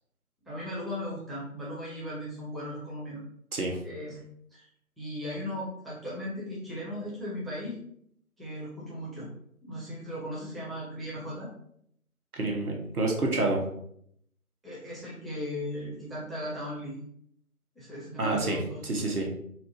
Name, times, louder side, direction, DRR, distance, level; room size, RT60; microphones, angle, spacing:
voice 1, 0.5-3.2 3.8-4.2 4.5-4.7 5.0-7.8 8.4-9.3 9.6-11.5 14.6-17.0 17.8-19.0, left 1 dB, ahead, -7 dB, 0.5 m, -37 dB
voice 2, 12.3-13.6 18.2-18.6 18.8-19.3, right 2 dB, 85° right, 0 dB, 1.0 m, -28 dB
4.4 x 2.0 x 2.5 m, 0.69 s
figure-of-eight pair, 175°, 43 cm